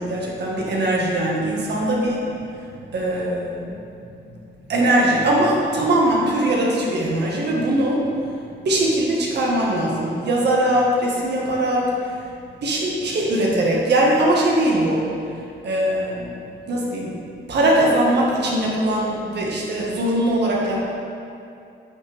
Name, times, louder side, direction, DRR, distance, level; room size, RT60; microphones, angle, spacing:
voice 1, 0.0-2.2 2.9-3.8 4.7-8.0 8.6-11.9 12.6-15.0 15.6-16.3 16.7-17.1 17.5-20.8, right 1 dB, 60° right, -3 dB, 1.7 m, -21 dB
8.8 x 6.2 x 3.5 m, 2.6 s
cardioid pair, 90°, 20 cm